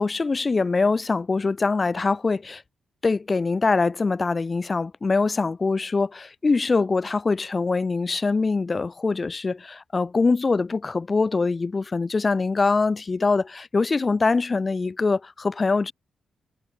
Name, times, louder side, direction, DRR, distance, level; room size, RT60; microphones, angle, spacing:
voice 1, 0.0-2.6 3.0-15.9, left 4 dB, 25° left, 0.3 m, -23 dB
wide cardioid pair, 150°, 0 cm